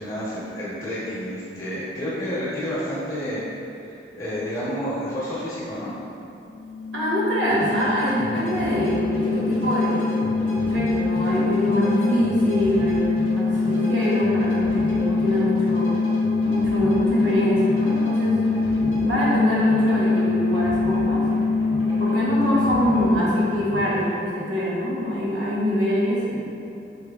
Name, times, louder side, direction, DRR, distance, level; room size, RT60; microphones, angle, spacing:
voice 1, 0.0-5.9, equal, 15° left, -10 dB, 1.0 m, -30 dB
sound 1, 6.5-24.0, left 4 dB, 75° left, 0.3 m, -24 dB
voice 2, 6.9-16.0 16.4-21.3 22.0-26.4, equal, 85° right, -7 dB, 1.0 m, -24 dB
sound 2, 7.5-24.2, equal, 30° right, 1.0 m, -34 dB
4.6 x 3.0 x 2.3 m, 2.7 s
head